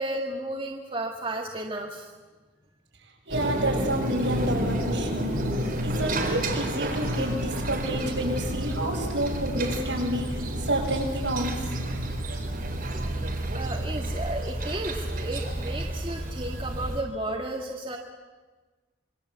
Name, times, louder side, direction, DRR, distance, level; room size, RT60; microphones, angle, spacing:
voice 1, 0.0-2.1 12.8-13.1 13.5-18.0, right 1 dB, 25° right, 0 dB, 1.8 m, -33 dB
sound 1, 3.3-17.0, right 1 dB, 45° right, 4.1 m, -30 dB
voice 2, 3.3-5.4 5.8-11.8, right 1 dB, 65° right, -1 dB, 7.8 m, -29 dB
26.5 x 23.0 x 8.1 m, 1.3 s
head